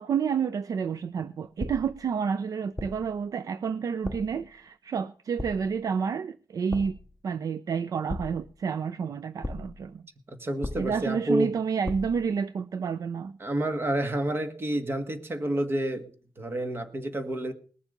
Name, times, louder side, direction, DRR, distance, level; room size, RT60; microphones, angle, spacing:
voice 1, 0.0-7.0 7.2-10.0 10.8-13.4, right 6 dB, 60° right, 0.5 m, -30 dB
sound 1, 1.6-2.1 2.8-3.2 4.0-4.4 5.4-5.8 6.7-7.1 8.1-8.6 9.4-9.9 10.6-11.2 11.8-12.3, left 1 dB, 5° left, 0.9 m, -37 dB
voice 2, 10.3-11.5 13.4-16.1 16.4-17.5, right 1 dB, 35° right, 1.7 m, -29 dB
20.0 x 7.3 x 5.2 m
wide cardioid pair, 145°, 7 cm